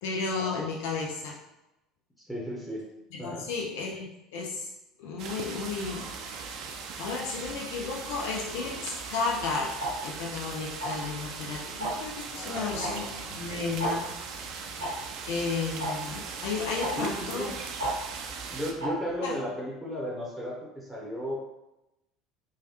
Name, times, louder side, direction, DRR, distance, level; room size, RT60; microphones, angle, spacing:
voice 1, 0.0-1.4 3.1-4.7 5.0-6.6 7.0-9.7 10.0-14.1 14.4-14.9 15.3-17.5 19.2-19.4, left 4 dB, 65° left, -2 dB, 0.5 m, -33 dB
voice 2, 2.2-2.8 3.2-3.5 12.3-13.7 17.0-17.5 18.5-21.3, equal, 5° left, -5 dB, 1.0 m, -35 dB
sound 1, 5.2-18.7, right 5 dB, 55° right, 0.4 m, -39 dB
Tick-tock, 9.8-9.9 10.8-11.1 11.8-12.1 12.8-12.9 13.2-13.3 13.8-13.9 14.8-14.9 15.8-15.9 16.8-16.9 17.8-17.9 18.8-18.9, right 1 dB, 80° right, 0.8 m, -30 dB
3.1 x 2.3 x 2.9 m, 0.92 s
hypercardioid pair, 70°, 0 cm